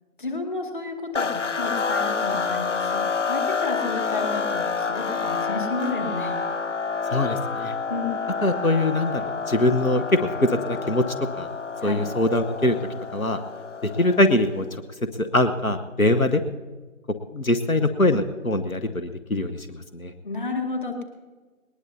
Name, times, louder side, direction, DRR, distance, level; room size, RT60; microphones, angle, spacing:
voice 1, 0.2-6.4 7.9-8.1 11.8-12.0 20.2-21.0, left 3 dB, 35° left, 3 dB, 2.3 m, -31 dB
sound 1, 1.1-14.5, left 5 dB, 60° left, 0.7 m, -28 dB
voice 2, 7.1-7.7 8.4-11.1 11.4-11.5 11.8-12.8 13.1-13.4 14.0-14.7 15.2-16.4 17.3-20.1, left 1 dB, 85° left, 9 dB, 1.3 m, -22 dB
20.5 x 20.0 x 2.8 m, 1.4 s
figure-of-eight pair, 160°, 41 cm